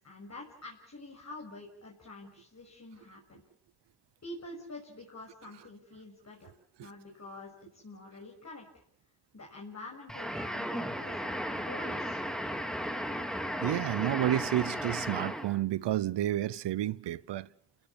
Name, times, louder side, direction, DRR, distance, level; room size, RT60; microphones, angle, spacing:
voice 1, 0.0-3.4 4.2-6.5 6.8-8.7 9.3-12.2, left 2 dB, 40° left, 6.6 m, -47 dB
sound 1, 10.1-15.6, equal, ahead, 2.8 m, -35 dB
voice 2, 13.6-17.5, right 13 dB, 80° right, 0.9 m, -30 dB
29.5 x 18.0 x 7.3 m
cardioid pair, 60°, 42 cm